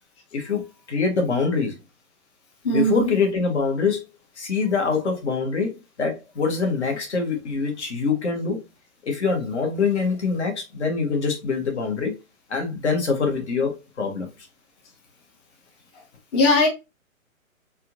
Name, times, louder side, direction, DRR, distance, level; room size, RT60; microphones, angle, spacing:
voice 1, 0.3-1.7 2.7-4.0 4.4-8.6 9.0-12.1 12.5-14.3, left 4 dB, 55° left, 1.5 m, -24 dB
voice 2, 2.6-3.1 16.3-16.7, left 1 dB, 20° left, 0.8 m, -19 dB
4.2 x 2.6 x 2.8 m
figure-of-eight pair, 130°, 41 cm